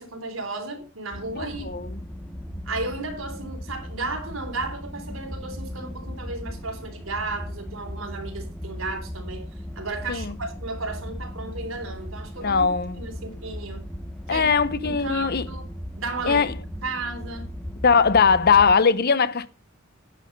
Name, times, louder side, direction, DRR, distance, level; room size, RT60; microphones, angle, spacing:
voice 1, 0.0-1.7 2.7-9.5 9.8-12.7 13.0-13.8 14.3-14.5 14.8-15.7 16.0-16.4 16.8-17.5, right 3 dB, 80° right, 3.7 m, -34 dB
sound 1, 1.1-18.7, equal, 5° left, 1.3 m, -37 dB
voice 2, 1.3-2.0 10.1-10.3 12.4-13.0 14.3-15.5 16.3-16.5 17.8-19.5, left 5 dB, 50° left, 0.8 m, -20 dB
11.0 x 9.1 x 5.3 m
head